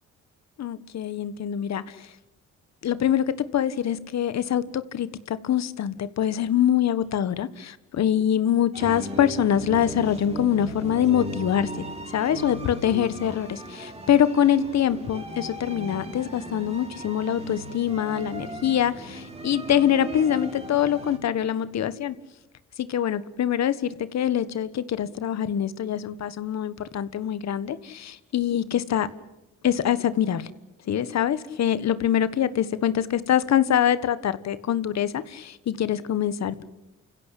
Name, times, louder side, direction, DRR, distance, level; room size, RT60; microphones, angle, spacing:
voice 1, 0.6-2.1 2.8-11.7 12.1-22.1 22.8-29.1 29.6-30.5 30.9-36.6, left 10 dB, 60° left, 14 dB, 1.6 m, -24 dB
sound 1, 8.7-21.2, right 1 dB, 20° right, 4.4 m, -37 dB
29.0 x 16.0 x 8.6 m, 1.0 s
cardioid pair, 90°, 30 cm